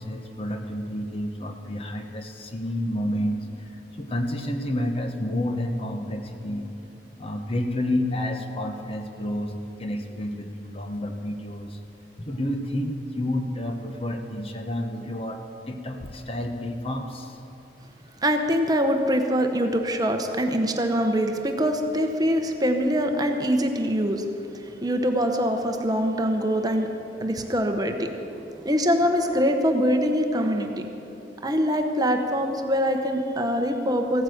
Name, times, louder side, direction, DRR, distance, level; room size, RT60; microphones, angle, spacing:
voice 1, 0.0-6.7 7.2-11.8 12.2-17.4, left 1 dB, 35° left, 5 dB, 1.0 m, -30 dB
voice 2, 18.2-24.3 24.5-26.9 27.2-30.9 31.4-34.2, equal, 20° right, 5 dB, 0.9 m, -24 dB
15.5 x 9.5 x 7.9 m, 2.9 s
head